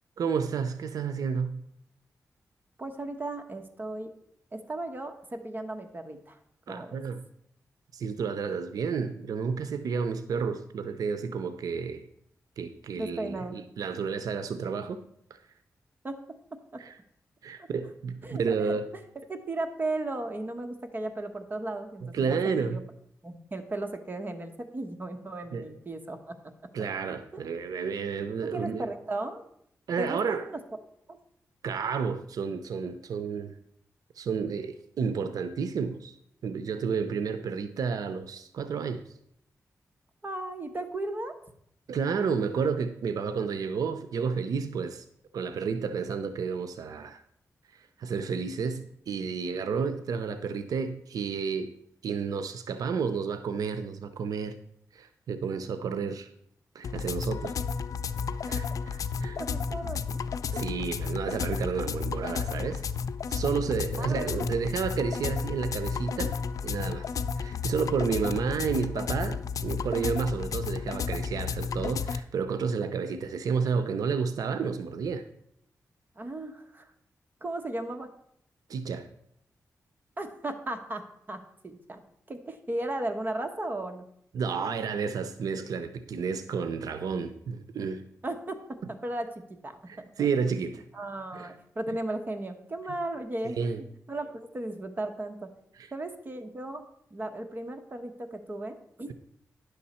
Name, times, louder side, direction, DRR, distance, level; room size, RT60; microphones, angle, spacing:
voice 1, 0.2-1.6 6.7-7.2 7.9-12.1 12.6-15.0 16.8-17.0 17.4-18.9 22.0-22.8 25.5-25.7 26.7-28.9 29.9-30.5 31.6-33.5 34.2-36.2 36.4-39.0 41.9-45.0 45.3-47.2 47.7-51.7 52.0-54.5 54.9-56.3 56.7-57.5 58.4-59.4 60.5-62.8 63.3-66.4 66.6-67.1 67.3-75.3 78.7-79.1 84.3-88.0 89.9-90.8 91.3-91.5 93.6-93.8 95.8-95.9, right 5 dB, 85° right, 10 dB, 0.5 m, -31 dB
voice 2, 2.8-4.1 4.5-6.4 6.7-7.0 13.0-13.6 16.0-16.2 16.7-16.8 17.6-17.7 18.2-18.8 19.1-22.8 23.2-26.3 27.3-27.4 28.4-29.4 30.0-30.6 31.1-31.2 40.2-41.3 58.5-58.7 59.3-60.2 64.0-64.5 76.2-76.9 77.4-78.1 80.2-82.0 82.3-84.0 88.2-89.9 90.2-90.3 90.9-95.5 95.9-96.8 97.1-99.1, right 2 dB, 30° right, 6 dB, 1.1 m, -36 dB
sound 1, 56.8-72.2, left 6 dB, 70° left, 0.4 m, -32 dB
10.0 x 6.5 x 4.2 m, 0.72 s
wide cardioid pair, 100°, 6 cm